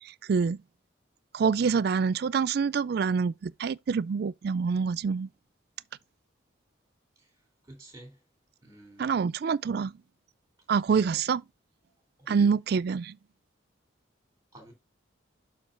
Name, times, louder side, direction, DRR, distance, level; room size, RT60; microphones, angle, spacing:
voice 1, 0.0-0.6 1.3-5.3 9.0-9.9 10.7-11.4 12.3-13.2, right 5 dB, 55° right, 0.3 m, -26 dB
voice 2, 7.6-8.2 8.6-9.2 10.9-11.2 12.2-12.5 14.5-14.7, right 1 dB, 15° right, 3.4 m, -50 dB
12.0 x 4.6 x 2.5 m
head